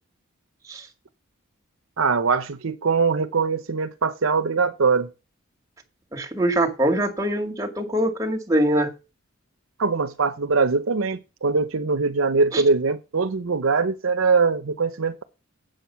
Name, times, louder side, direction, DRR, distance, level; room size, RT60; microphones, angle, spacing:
voice 1, 2.0-5.1 9.8-15.2, right 4 dB, 75° right, 0.7 m, -22 dB
voice 2, 6.1-8.9 12.5-12.6, right 1 dB, 15° right, 2.0 m, -23 dB
7.8 x 7.8 x 5.7 m
head